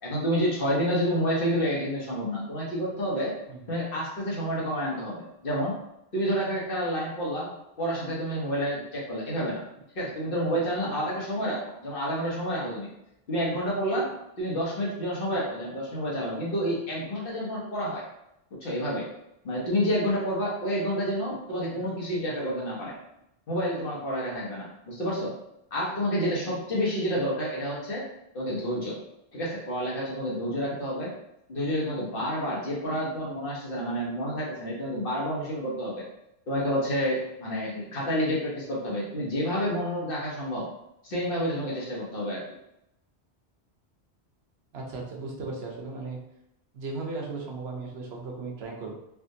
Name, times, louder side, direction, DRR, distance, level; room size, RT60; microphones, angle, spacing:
voice 1, 0.0-3.3 3.7-5.8 6.1-9.6 9.9-12.9 13.3-14.1 14.4-18.0 18.6-19.1 19.4-23.0 23.5-25.3 25.7-28.1 28.3-29.0 29.3-31.1 31.5-36.1 36.5-40.7 41.0-42.4, equal, 60° left, -4 dB, 1.1 m, -29 dB
voice 2, 44.7-46.2 46.7-49.0, right 3 dB, 75° right, -1 dB, 1.0 m, -36 dB
3.4 x 2.5 x 2.6 m, 0.84 s
omnidirectional pair, 1.1 m